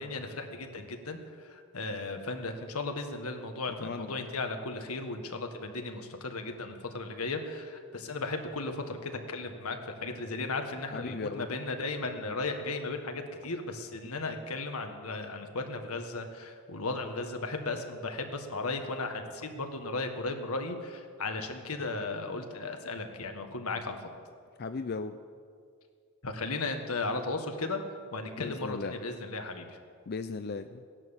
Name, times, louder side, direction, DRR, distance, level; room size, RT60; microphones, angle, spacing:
voice 1, 0.0-24.0 26.2-27.8 28.1-29.8, left 3 dB, 90° left, 5 dB, 1.7 m, -36 dB
voice 2, 3.8-4.3 10.9-11.5 24.6-25.2 28.4-28.9 30.1-30.8, left 4 dB, 45° left, 9 dB, 0.5 m, -37 dB
17.0 x 11.0 x 7.3 m, 2.1 s
head